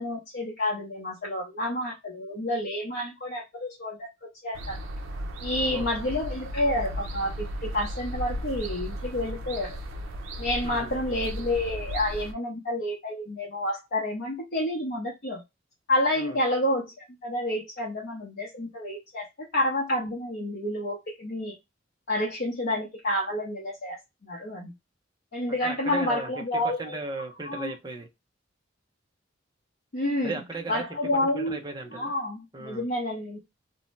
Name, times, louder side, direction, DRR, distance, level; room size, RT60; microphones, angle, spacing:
voice 1, 0.0-4.1 4.4-4.8 5.4-9.8 10.4-15.4 15.9-21.5 22.1-24.7 25.3-27.0 27.5-27.7 29.9-30.3 30.7-31.6 31.9-33.4, left 1 dB, 50° left, -2 dB, 0.7 m, -29 dB
sound 1, 4.5-12.3, equal, 80° right, 0.5 m, -35 dB
voice 2, 25.5-28.1 30.2-30.8 31.1-32.1 32.5-32.9, right 3 dB, 20° right, 4 dB, 0.5 m, -36 dB
2.6 x 2.0 x 3.0 m, 0.21 s
head